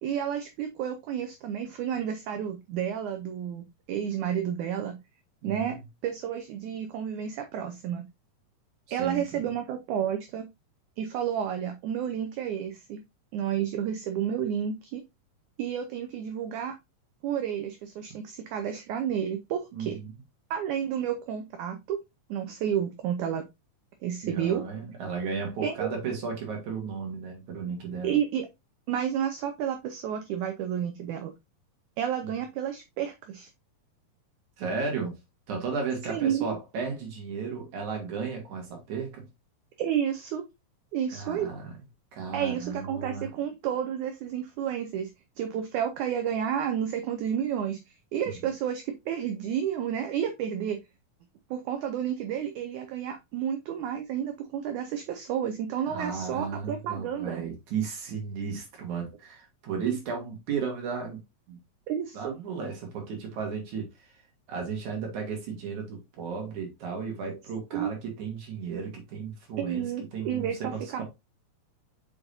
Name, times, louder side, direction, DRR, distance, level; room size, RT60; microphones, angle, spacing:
voice 1, 0.0-5.0 5.4-8.1 8.9-10.5 11.0-13.0 13.3-15.0 15.6-16.7 17.2-20.0 20.5-22.0 22.3-23.5 24.0-24.6 25.6-26.0 28.0-28.5 28.9-31.3 32.0-33.5 36.1-36.6 39.8-40.4 40.9-41.5 42.3-45.1 45.4-50.8 51.5-57.4 59.9-60.0 61.9-62.4 67.7-67.9 69.6-71.0, right 9 dB, 75° right, 1.9 m, -31 dB
voice 2, 5.4-5.8 8.9-9.5 19.7-20.1 24.2-28.2 32.2-32.4 34.6-35.2 35.5-39.3 41.1-41.7 42.1-43.3 55.9-61.2 61.5-61.6 62.1-64.1 64.5-69.9 70.1-71.0, right 5 dB, 60° right, 3.4 m, -34 dB
7.1 x 5.1 x 2.6 m
omnidirectional pair, 4.1 m